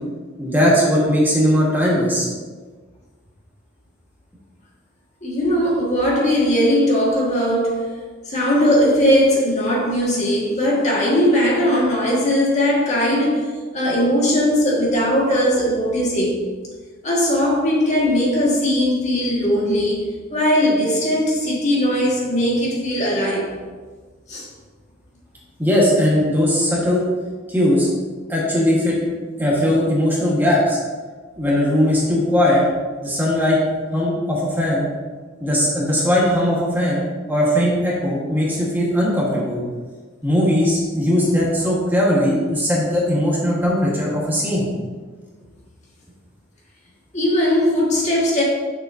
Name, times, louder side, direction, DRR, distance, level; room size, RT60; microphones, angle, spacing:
voice 1, 0.4-2.3 25.6-27.1 27.5-27.9 28.3-29.0 29.4-30.8 31.4-32.6 33.0-33.6 33.9-34.9 35.4-37.0 37.3-39.6 40.2-44.7, left 1 dB, 10° right, -5 dB, 1.5 m, -19 dB
voice 2, 5.2-7.9 8.2-13.5 13.7-16.4 17.0-23.5 24.3-24.5 47.1-48.4, equal, 35° left, -4 dB, 1.7 m, -19 dB
8.9 x 6.6 x 2.7 m, 1.4 s
head